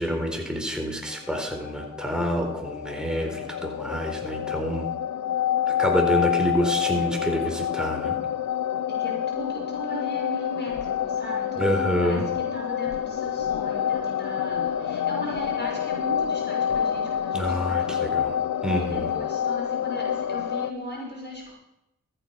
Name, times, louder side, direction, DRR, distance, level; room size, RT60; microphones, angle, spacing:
voice 1, 0.0-4.9 5.7-8.2 11.6-12.2 17.3-18.4 18.6-19.1, equal, ahead, 2 dB, 4.1 m, -27 dB
sound 1, 1.2-20.7, left 9 dB, 60° left, 0.6 m, -28 dB
voice 2, 8.9-18.2 18.8-21.5, left 1 dB, 35° left, -2 dB, 5.8 m, -37 dB
14.0 x 9.1 x 5.8 m, 0.85 s
cardioid pair, 40°, 32 cm